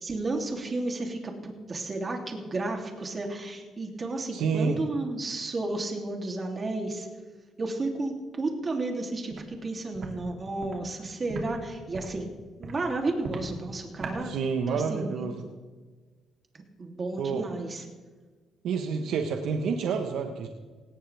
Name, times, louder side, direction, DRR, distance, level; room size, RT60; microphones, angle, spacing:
voice 1, 0.0-7.1 7.6-12.3 12.6-14.3 14.7-15.3 16.5-17.8, right 2 dB, 35° right, 2 dB, 3.0 m, -32 dB
voice 2, 4.3-4.8 14.2-15.4 17.2-17.4 18.6-20.5, right 5 dB, 80° right, 5 dB, 1.2 m, -28 dB
Walk footsteps, 9.3-9.4 9.9-10.1 10.6-10.7 11.3-11.4 11.9-12.2 12.6-12.8 13.2-13.5 14.0-14.2, right 4 dB, 60° right, 3.1 m, -37 dB
18.5 x 17.5 x 3.5 m, 1.4 s
cardioid pair, 90°, 0 cm